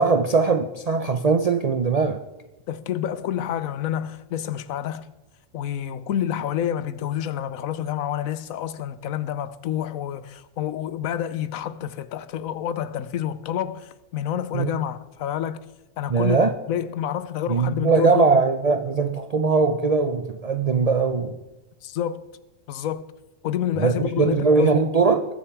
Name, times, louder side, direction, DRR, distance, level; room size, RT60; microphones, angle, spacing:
voice 1, 0.0-2.2 14.5-14.7 16.1-16.5 17.5-21.4 23.8-25.3, right 4 dB, 55° right, 0.4 m, -20 dB
voice 2, 2.7-5.1 5.5-15.6 16.0-16.4 16.7-18.3 21.8-22.2 22.7-23.0 23.4-24.8, left 10 dB, 85° left, 1.1 m, -28 dB
21.0 x 7.0 x 4.6 m
omnidirectional pair, 1.4 m